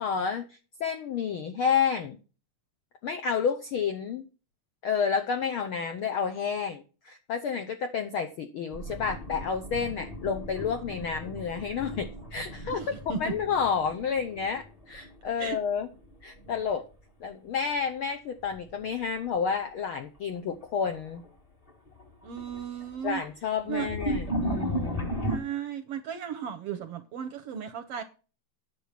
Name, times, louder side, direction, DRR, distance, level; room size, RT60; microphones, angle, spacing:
voice 1, 0.0-2.2 3.0-4.2 4.8-12.8 13.2-15.9 16.2-16.8 17.2-21.2 23.0-25.1, left 6 dB, 75° left, 1.2 m, -30 dB
sound 1, 8.7-15.5 15.8-16.7 18.4-18.7 19.3-19.4 20.4-20.5 20.8-21.3 21.7-25.4, equal, 20° left, 1.0 m, -36 dB
voice 2, 12.7-13.4 15.4-15.6 22.2-23.2 23.7-23.9 25.2-28.0, right 8 dB, 70° right, 1.5 m, -35 dB
9.9 x 7.0 x 5.8 m
omnidirectional pair, 3.5 m